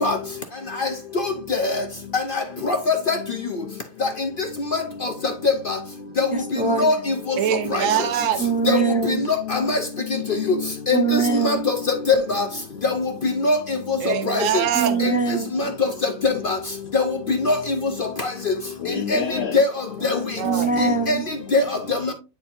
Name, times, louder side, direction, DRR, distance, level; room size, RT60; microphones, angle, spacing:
voice 1, 2.7-3.2 6.2-6.3 6.8-6.9 7.7-7.8 8.7-8.8 9.5-9.8 10.9-11.2 11.4-11.7 12.3-12.4 13.4-13.6 14.3-14.4 15.6-15.7 16.2-16.6 16.9-17.6 19.1-19.2 19.5-19.7 21.1-21.2 21.5-21.6, left 3 dB, 50° left, 0.7 m, -20 dB
voice 2, 6.3-6.9 8.4-9.2 10.9-11.6 14.7-15.5 20.4-21.2, right 5 dB, 5° right, 0.9 m, -23 dB
voice 3, 7.4-8.4 14.0-15.0 20.0-20.1 20.4-20.7, right 9 dB, 70° right, 1.0 m, -23 dB
voice 4, 15.5-16.2 18.5-19.8 21.7-22.1, left 7 dB, 65° left, 1.1 m, -32 dB
9.6 x 4.3 x 2.5 m
omnidirectional pair, 1.5 m